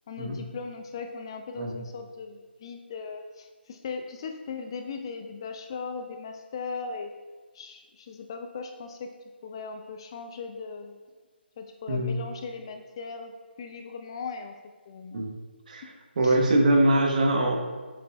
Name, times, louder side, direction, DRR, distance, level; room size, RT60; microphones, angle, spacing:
voice 1, 0.1-7.1 7.5-9.1 9.4-11.0 11.6-14.6 14.9-15.2 15.8-15.9 16.2-16.4, left 5 dB, 25° left, 5 dB, 0.4 m, -38 dB
voice 2, 16.2-17.6, right 1 dB, 45° right, 2 dB, 1.0 m, -22 dB
7.3 x 6.7 x 2.3 m, 1.4 s
figure-of-eight pair, 160°, 6 cm